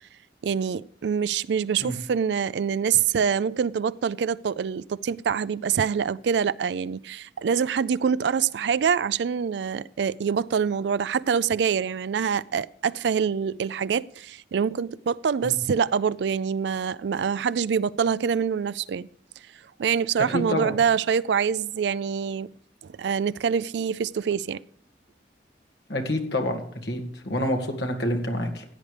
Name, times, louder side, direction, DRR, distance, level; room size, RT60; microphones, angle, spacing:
voice 1, 0.4-19.1 19.8-22.5 22.8-24.6, right 7 dB, 70° right, 0.4 m, -25 dB
voice 2, 20.3-20.7 25.9-28.6, left 1 dB, 70° left, 2.0 m, -27 dB
16.0 x 9.4 x 3.3 m
head